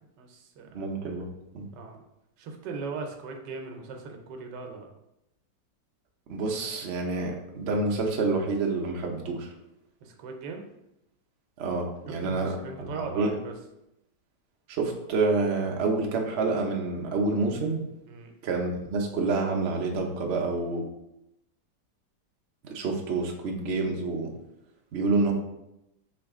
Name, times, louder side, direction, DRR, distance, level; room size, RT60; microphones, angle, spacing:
voice 1, 0.2-0.7 1.7-2.0 2.4-4.9 10.0-10.7 12.2-13.5 18.1-18.3, right 4 dB, 80° right, 3 dB, 1.3 m, -39 dB
voice 2, 0.7-1.3 1.5-1.7 6.3-9.5 11.6-13.3 14.7-17.8 18.4-20.9 22.6-24.3 24.9-25.3, right 3 dB, 55° right, 0 dB, 0.7 m, -28 dB
4.7 x 2.9 x 3.5 m, 0.87 s
omnidirectional pair, 1.9 m